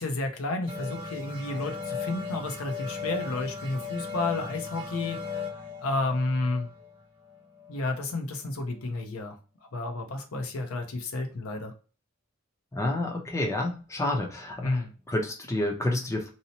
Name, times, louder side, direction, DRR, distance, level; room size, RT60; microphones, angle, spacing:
voice 1, 0.0-5.4 5.8-6.7 7.7-9.4 9.7-11.7 14.6-14.9, left 2 dB, 75° left, 5 dB, 0.6 m, -31 dB
sound 1, 0.7-7.9, left 5 dB, 25° right, 0.9 m, -37 dB
voice 2, 12.7-16.3, left 1 dB, 15° left, 0 dB, 0.6 m, -29 dB
2.7 x 2.0 x 2.7 m, 0.35 s
head